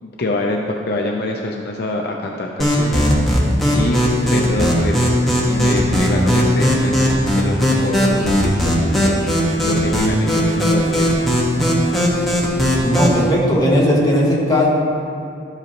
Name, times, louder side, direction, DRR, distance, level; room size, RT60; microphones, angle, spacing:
voice 1, 0.0-3.1 3.7-5.2 5.5-9.2 9.6-11.3, left 2 dB, 60° left, 1 dB, 0.6 m, -25 dB
sound 1, 2.6-13.2, equal, ahead, 1.3 m, -17 dB
voice 2, 12.8-14.7, equal, 20° left, -5 dB, 1.5 m, -17 dB
12.0 x 8.0 x 2.9 m, 2.6 s
head